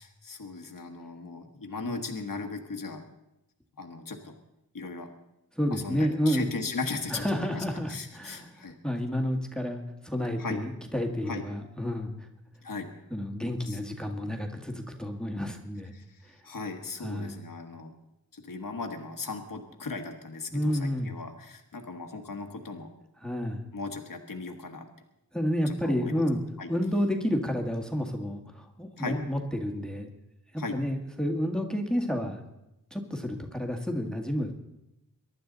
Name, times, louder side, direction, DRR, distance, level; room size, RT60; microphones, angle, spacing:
voice 1, 0.0-3.1 3.8-4.3 4.7-5.1 5.7-8.8 10.4-10.6 11.3-11.4 12.6-12.9 13.7-13.8 15.9-17.9 18.3-22.9 23.7-24.9 25.7-26.2 26.6-26.7 29.0-29.2 30.6-30.8, left 3 dB, 60° left, 4 dB, 1.5 m, -37 dB
voice 2, 5.5-6.5 7.1-8.5 8.8-12.3 13.1-15.9 16.2-16.3 17.0-17.4 20.5-21.1 23.2-23.6 25.3-26.4 26.7-30.1 30.5-32.4 32.9-34.6, equal, ahead, 3 dB, 1.7 m, -30 dB
23.5 x 11.5 x 4.0 m, 0.90 s
wide cardioid pair, 80°, 36 cm